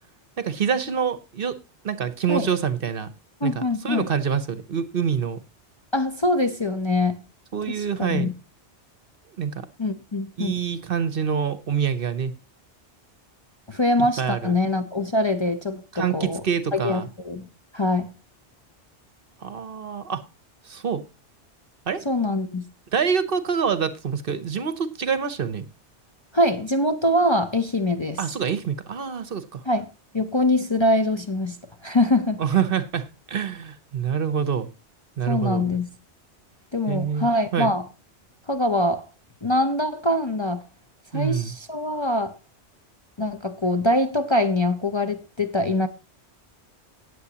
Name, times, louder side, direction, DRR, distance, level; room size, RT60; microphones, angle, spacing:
voice 1, 0.4-1.6 1.8-3.1 3.4-5.4 7.5-8.3 9.4-9.7 10.4-12.3 14.2-14.5 15.9-17.1 19.4-20.2 20.7-21.0 21.9-22.0 22.9-25.7 28.2-29.6 32.4-34.7 35.2-35.7 36.9-37.7 41.1-41.5, right 7 dB, 55° right, 0.9 m, -26 dB
voice 2, 3.4-4.1 5.9-7.2 7.7-8.3 9.8-10.7 13.7-16.4 16.7-17.5 17.7-18.1 22.0-22.6 26.3-28.2 29.6-32.4 35.3-35.9 36.7-37.9 38.5-39.0 39.4-40.6 41.1-42.4 43.2-45.9, left 1 dB, 30° left, 0.6 m, -23 dB
18.0 x 7.8 x 2.9 m
omnidirectional pair, 1.2 m